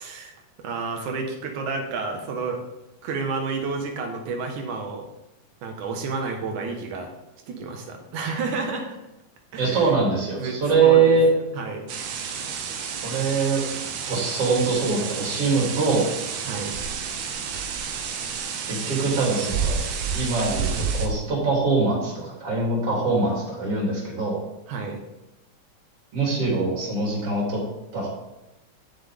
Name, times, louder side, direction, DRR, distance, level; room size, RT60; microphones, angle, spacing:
voice 1, 0.0-2.6 3.0-5.0 5.6-7.1 7.5-9.0 9.5-9.9 10.4-11.2 11.5-11.9 16.4-16.8 24.7-25.0, right 4 dB, 85° right, 3 dB, 2.9 m, -30 dB
voice 2, 9.6-11.3 13.0-13.6 14.1-16.0 18.7-19.8 20.1-24.4 26.1-27.6 27.9-28.1, right 4 dB, 50° right, -4 dB, 4.1 m, -23 dB
sound 1, 11.9-21.1, right 6 dB, 70° right, 2.1 m, -30 dB
11.5 x 7.8 x 3.6 m, 0.96 s
omnidirectional pair, 3.4 m